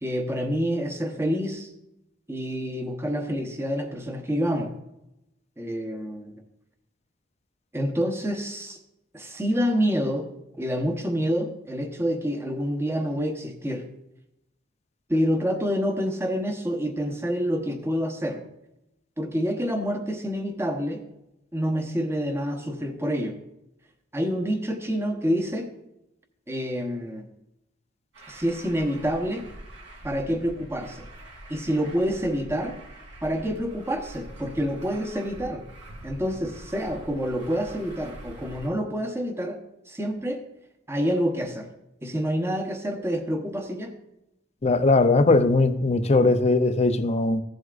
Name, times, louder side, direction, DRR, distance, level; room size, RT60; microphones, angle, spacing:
voice 1, 0.0-1.7 2.3-4.7 5.6-6.4 7.7-8.8 9.1-10.3 10.5-13.8 15.1-18.4 19.2-21.0 21.5-23.4 24.1-25.7 26.5-27.3 28.3-29.4 30.0-31.1 31.5-32.8 33.2-35.6 36.0-39.6 39.9-40.4 40.9-41.7 42.0-43.9, equal, 15° right, 1.0 m, -27 dB
Truck, 28.1-38.7, right 1 dB, 70° right, 3.3 m, -44 dB
voice 2, 44.6-47.4, left 3 dB, 35° left, 0.6 m, -20 dB
15.0 x 7.9 x 2.5 m
head